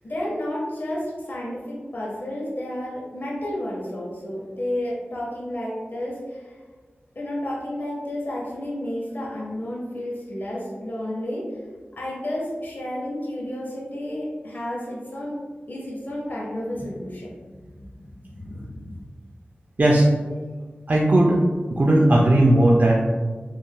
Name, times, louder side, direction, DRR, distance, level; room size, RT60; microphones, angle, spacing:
voice 1, 0.0-6.6 7.2-11.5 12.0-15.4 15.7-19.0, left 1 dB, 55° left, -6 dB, 0.8 m, -31 dB
voice 2, 20.9-21.4 21.7-23.0, right 1 dB, 45° right, -3 dB, 0.3 m, -16 dB
3.5 x 2.4 x 2.2 m, 1.4 s
wide cardioid pair, 60°, 4 cm